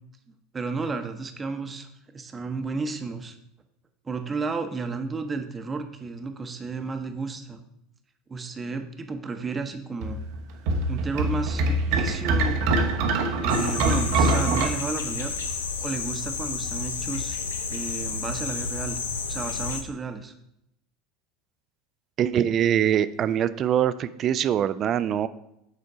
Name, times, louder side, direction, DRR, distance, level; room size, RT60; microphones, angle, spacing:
voice 1, 0.5-1.9 2.1-3.4 4.0-7.6 8.3-10.2 10.9-12.6 13.4-15.3 15.8-17.4 17.7-19.0 19.3-20.3, right 4 dB, 25° right, 7 dB, 0.8 m, -32 dB
sound 1, 10.0-14.7, right 2 dB, 60° right, 0.8 m, -24 dB
sound 2, 13.5-19.8, left 4 dB, 80° left, 0.6 m, -31 dB
voice 2, 22.2-25.3, right 10 dB, 40° right, 15 dB, 0.4 m, -23 dB
6.7 x 4.4 x 4.9 m, 0.80 s
hypercardioid pair, 75°, 0 cm